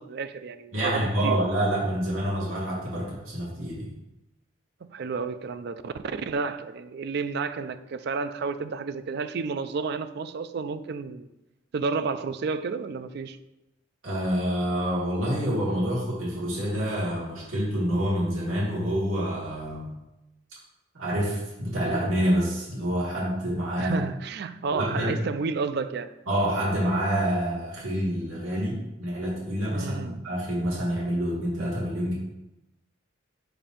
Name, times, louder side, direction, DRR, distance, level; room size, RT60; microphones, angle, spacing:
voice 1, 0.0-1.4 4.9-11.3 11.7-13.4 23.8-26.1 29.7-30.3, right 4 dB, 55° right, 0.4 m, -31 dB
voice 2, 0.7-3.9 14.0-19.9 20.9-24.0 24.7-25.1 26.3-32.2, equal, 85° right, 2.1 m, -27 dB
6.8 x 2.7 x 5.6 m
head